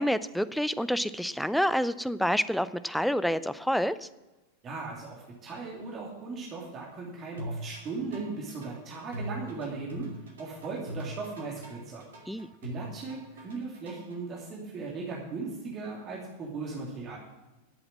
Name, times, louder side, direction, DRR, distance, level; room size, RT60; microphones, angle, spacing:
voice 1, 0.0-4.1 12.3-12.5, equal, ahead, 15 dB, 0.5 m, -28 dB
voice 2, 4.6-10.1 10.4-12.0 12.6-17.2, right 3 dB, 30° right, -3 dB, 2.8 m, -38 dB
sound 1, 7.4-14.2, right 1 dB, 65° right, 2.5 m, -41 dB
12.0 x 7.9 x 7.4 m, 1.1 s
figure-of-eight pair, 90°, 0 cm